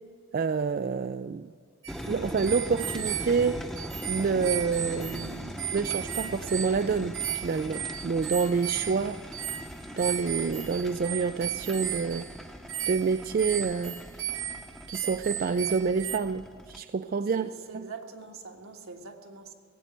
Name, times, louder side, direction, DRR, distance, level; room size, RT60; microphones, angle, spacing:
voice 1, 0.3-1.5 2.1-3.6 4.1-9.2 10.0-12.3 12.9-14.0 14.9-17.4, right 5 dB, 40° right, 0.3 m, -28 dB
sound 1, 1.8-16.2, right 11 dB, 60° right, 0.9 m, -36 dB
sound 2, 1.9-16.8, equal, ahead, 0.7 m, -41 dB
voice 2, 17.3-19.5, right 4 dB, 80° right, 1.6 m, -43 dB
17.0 x 9.0 x 8.3 m
head